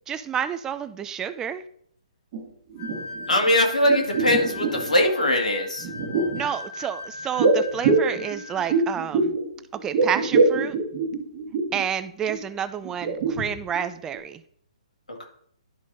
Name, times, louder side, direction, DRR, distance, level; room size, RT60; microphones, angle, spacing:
voice 1, 0.1-1.6 6.3-9.3 9.7-10.8 11.7-14.4, right 8 dB, 15° right, 13 dB, 0.4 m, -29 dB
sound 1, 2.3-2.4 2.7-3.5 3.8-5.0 5.8-6.5 7.4-9.5 9.8-11.8 12.3-12.4 12.8-13.9 14.1-14.2, right 3 dB, 40° right, 1.3 m, -24 dB
sound 2, 2.8-8.9, left 3 dB, 35° left, 2.3 m, -39 dB
voice 2, 3.3-5.9, left 1 dB, 90° left, 2 dB, 2.0 m, -21 dB
12.0 x 4.9 x 2.7 m, 0.65 s
hypercardioid pair, 135°, 4 cm